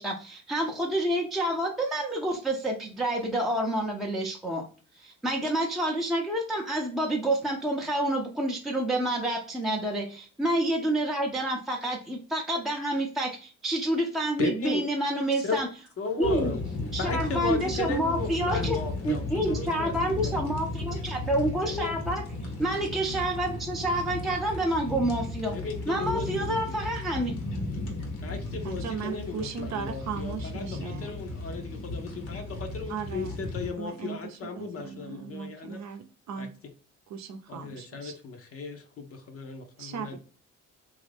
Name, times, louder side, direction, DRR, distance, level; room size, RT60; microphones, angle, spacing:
voice 1, 0.0-4.7 5.0-15.7 16.2-16.5 16.9-18.8 19.0-22.2 22.6-25.6 25.9-27.3, right 1 dB, ahead, 0.5 m, -28 dB
voice 2, 14.4-14.8 15.4-15.6 16.0-16.6 17.0-20.4 21.6-22.0 25.5-26.8 28.2-35.8 36.4-36.5 37.5-40.2, left 4 dB, 50° left, 0.6 m, -36 dB
sound 1, 16.2-33.7, left 2 dB, 85° left, 1.1 m, -35 dB
voice 3, 28.6-31.1 32.9-33.4 33.8-36.5 37.1-38.2 39.8-40.2, right 6 dB, 65° right, 0.6 m, -37 dB
3.0 x 2.4 x 3.3 m
cardioid pair, 90°, 30 cm